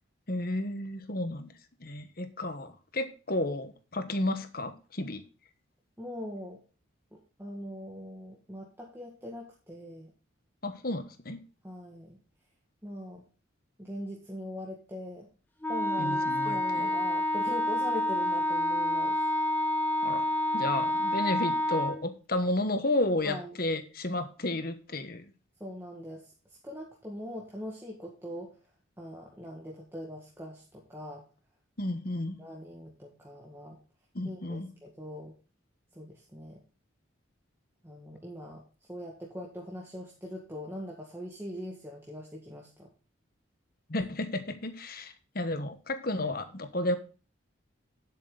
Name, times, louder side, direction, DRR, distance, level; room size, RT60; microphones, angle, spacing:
voice 1, 0.3-1.5 1.8-5.2 10.6-11.4 16.0-16.9 20.0-20.3 20.5-25.2 31.8-32.4 34.1-34.7 43.9-47.0, left 1 dB, 45° left, 9 dB, 1.3 m, -32 dB
voice 2, 6.0-6.6 7.4-10.1 11.6-12.2 12.8-13.3 13.8-15.3 15.7-19.2 23.2-23.6 25.6-28.6 29.0-31.2 32.4-33.8 34.2-35.3 35.9-36.6 37.8-42.9, equal, 10° right, -2 dB, 1.7 m, -42 dB
Wind instrument woodwind instrument, 15.6-22.0, left 1 dB, 10° left, 1.5 m, -28 dB
10.5 x 8.0 x 3.9 m, 0.36 s
head